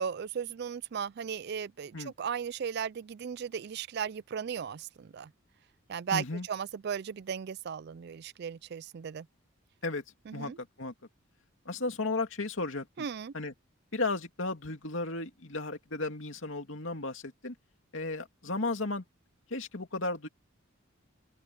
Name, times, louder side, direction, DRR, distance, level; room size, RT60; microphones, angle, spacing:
voice 1, 0.0-5.3 5.9-9.3 10.3-10.6 13.0-13.3, right 7 dB, 50° right, 0.4 m, -36 dB
voice 2, 6.1-6.5 9.8-10.0 10.3-10.9 11.6-13.1 13.3-13.5 13.9-17.5 17.9-19.0 19.5-20.3, left 3 dB, 65° left, 2.7 m, -34 dB
open air
head